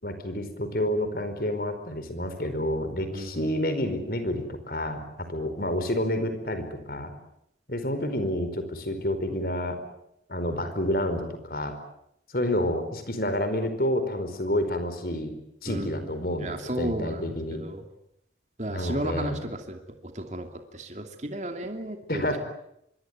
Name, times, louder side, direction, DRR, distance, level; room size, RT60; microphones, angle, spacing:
voice 1, 0.0-7.1 7.7-9.8 10.3-11.7 12.3-15.3 15.6-17.6 18.7-19.4 22.1-22.4, left 1 dB, 55° left, 9 dB, 4.8 m, -29 dB
voice 2, 3.1-3.5 15.6-16.1 16.4-17.9 18.6-22.4, right 1 dB, 40° right, 5 dB, 2.8 m, -34 dB
25.5 x 22.5 x 9.6 m, 0.78 s
head